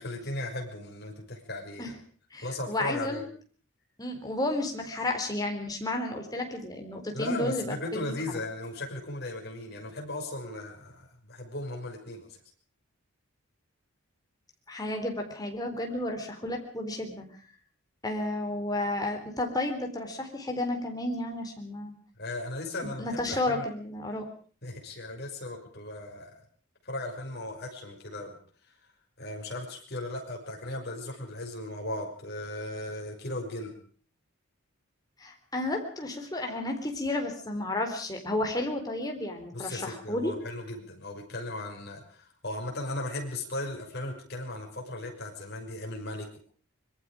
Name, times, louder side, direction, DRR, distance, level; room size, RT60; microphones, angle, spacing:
voice 1, 0.0-1.9 2.4-3.3 7.1-12.3 22.2-23.7 24.6-26.4 26.8-28.4 29.2-33.7 39.5-46.4, left 1 dB, 45° left, 1 dB, 6.3 m, -37 dB
voice 2, 2.3-3.2 4.0-8.1 14.7-17.3 18.0-22.0 22.8-24.3 35.2-40.3, left 1 dB, 15° left, 3 dB, 3.8 m, -32 dB
25.5 x 21.5 x 5.1 m, 0.43 s
head